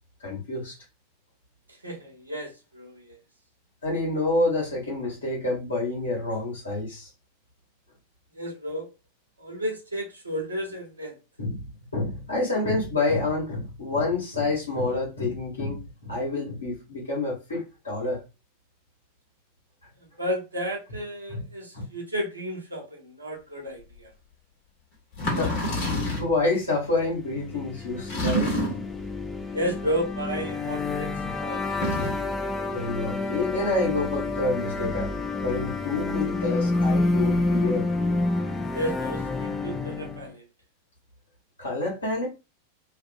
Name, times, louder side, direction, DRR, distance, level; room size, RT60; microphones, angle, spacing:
voice 1, 0.2-0.7 3.8-7.1 11.4-11.7 11.9-18.2 21.3-21.4 21.7-21.8 25.3-25.6 26.0-28.5 32.7-35.1 35.4-37.9 41.6-42.3, left 2 dB, 75° left, 1.2 m, -28 dB
voice 2, 1.8-3.2 8.3-8.9 9.4-11.2 20.0-24.1 29.5-31.6 38.7-40.4, equal, 75° right, 0.9 m, -32 dB
sound 1, 24.0-24.1 25.1-26.4 28.1-29.0 31.7-32.3, equal, 45° left, 1.2 m, -27 dB
sound 2, 27.3-40.3, left 2 dB, 10° left, 0.4 m, -28 dB
2.6 x 2.4 x 2.5 m
figure-of-eight pair, 90°, 0 cm